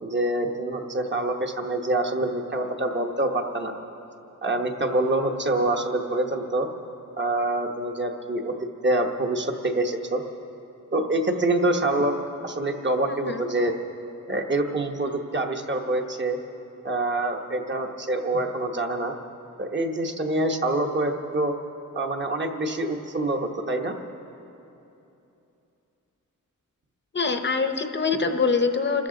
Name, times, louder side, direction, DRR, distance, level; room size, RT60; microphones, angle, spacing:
voice 1, 0.0-3.7 4.4-6.7 7.2-8.5 8.8-10.2 10.9-12.2 12.4-13.7 14.3-16.4 16.8-19.1 19.6-21.5 21.9-23.9, right 2 dB, 35° right, 3 dB, 1.0 m, -26 dB
voice 2, 13.1-13.5 27.1-29.1, left 4 dB, 35° left, 6 dB, 0.7 m, -24 dB
27.5 x 13.5 x 3.8 m, 2.9 s
wide cardioid pair, 170°, 32 cm